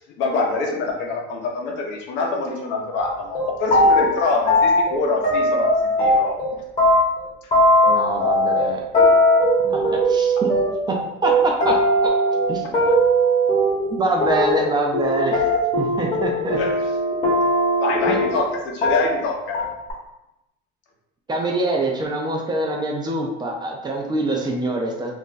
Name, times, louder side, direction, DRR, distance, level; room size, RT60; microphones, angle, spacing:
voice 1, 0.2-6.4 16.6-16.8 17.8-19.7, left 3 dB, 60° left, 1 dB, 0.8 m, -25 dB
sound 1, 3.0-3.1 3.3-4.2 4.5-6.5 6.8-18.5 18.8-19.3 19.5-19.9, equal, 35° left, 1.0 m, -19 dB
voice 2, 7.9-8.8 9.6-10.5 10.9-11.0 11.2-11.8 12.0-12.1 12.5-12.7 13.9-15.5 15.8-16.6 18.1-18.2 21.3-25.1, right 2 dB, 20° right, 0 dB, 0.5 m, -24 dB
2.5 x 2.2 x 3.8 m, 0.90 s
cardioid pair, 125°, 21 cm